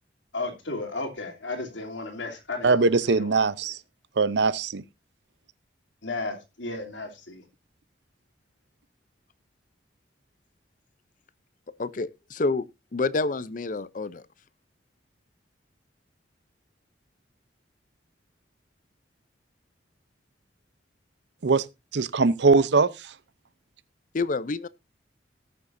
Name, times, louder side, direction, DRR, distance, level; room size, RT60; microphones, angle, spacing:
voice 1, 0.3-3.5 6.0-7.4, left 2 dB, 85° left, 3.0 m, -34 dB
voice 2, 2.6-3.8 4.2-4.8 21.4-21.6 21.9-22.9, right 4 dB, 70° right, 0.6 m, -21 dB
voice 3, 11.8-12.7 12.9-14.2 24.1-24.7, left 3 dB, 45° left, 0.5 m, -28 dB
18.5 x 6.9 x 2.6 m
head